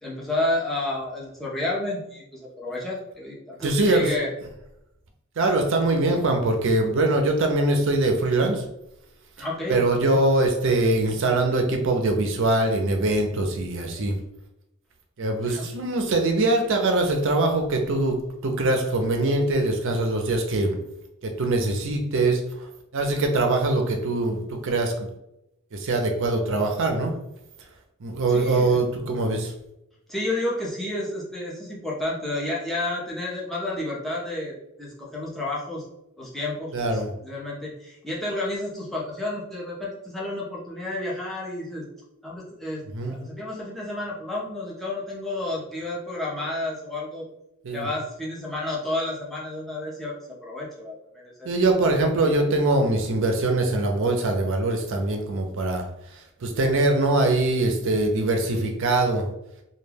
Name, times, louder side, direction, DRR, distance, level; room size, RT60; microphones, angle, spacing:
voice 1, 0.0-4.3 9.4-10.2 15.4-15.7 28.3-28.8 30.1-35.8 36.2-41.9 42.2-47.3 47.7-50.2 50.4-51.5, left 2 dB, ahead, -6 dB, 0.6 m, -31 dB
voice 2, 3.6-4.1 5.4-8.6 9.7-14.1 15.2-18.2 18.4-20.8 21.2-22.4 22.9-25.1 25.7-27.1 28.0-29.5 36.7-37.1 42.9-43.2 47.6-47.9 51.4-55.8 56.4-59.3, right 2 dB, 60° right, 4 dB, 0.5 m, -22 dB
2.2 x 2.2 x 3.2 m, 0.85 s
head